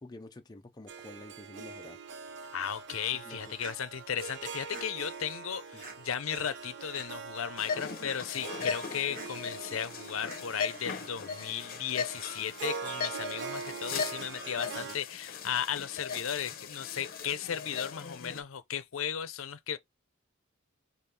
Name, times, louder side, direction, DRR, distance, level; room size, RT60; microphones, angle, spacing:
voice 1, 0.0-2.0 3.1-3.5 5.7-5.8 8.5-8.8 14.8-15.0, left 2 dB, 20° left, 0.5 m, -49 dB
Harp, 0.9-15.0, right 5 dB, 60° right, 0.5 m, -43 dB
voice 2, 2.5-19.8, left 8 dB, 75° left, 0.6 m, -35 dB
sound 1, 3.6-3.8 4.7-4.9 5.8-6.0 6.9-7.1 8.0-8.2 9.1-9.3 10.3-10.4, right 3 dB, 45° right, 1.2 m, -45 dB
sound 2, 7.6-18.4, left 6 dB, 50° left, 0.8 m, -39 dB
5.3 x 2.5 x 3.3 m
head